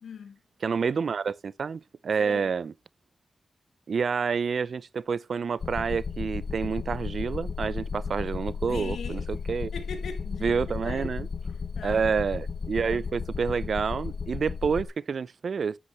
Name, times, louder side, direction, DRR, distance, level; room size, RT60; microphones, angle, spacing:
voice 1, 0.0-0.4 2.2-2.5 8.7-9.3 9.7-11.1 11.8-12.1, left 5 dB, 85° left, 1.7 m, -40 dB
voice 2, 0.6-2.7 3.9-9.7 10.4-11.3 11.8-15.8, right 5 dB, 75° right, 0.4 m, -28 dB
sound 1, 5.6-14.9, left 5 dB, 65° left, 1.1 m, -34 dB
8.6 x 7.9 x 3.0 m
cardioid pair, 50°, 0 cm